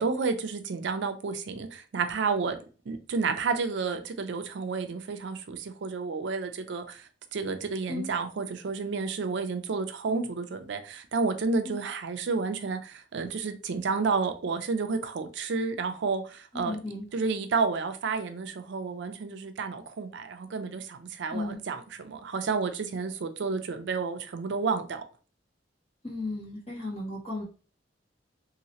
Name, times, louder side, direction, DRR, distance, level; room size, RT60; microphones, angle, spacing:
voice 1, 0.0-2.6 2.9-16.8 17.1-25.0, right 4 dB, 70° right, 0.4 m, -31 dB
voice 2, 16.5-17.1 21.3-21.6 26.0-27.4, left 2 dB, 35° left, 1.7 m, -35 dB
3.1 x 2.9 x 2.8 m
head